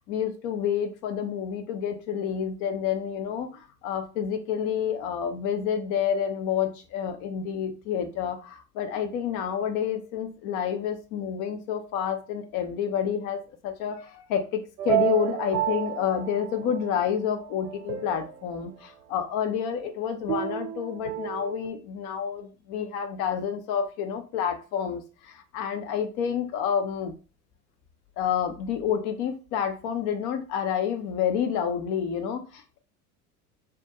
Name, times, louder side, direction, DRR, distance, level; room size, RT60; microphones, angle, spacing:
voice 1, 0.0-27.1 28.2-32.8, left 8 dB, 40° left, 7 dB, 0.6 m, -29 dB
sound 1, 14.8-17.0 17.4-18.6 20.3-21.7, right 14 dB, 85° right, 0.5 m, -30 dB
2.3 x 2.1 x 2.7 m, 0.34 s
figure-of-eight pair, 75°, 48 cm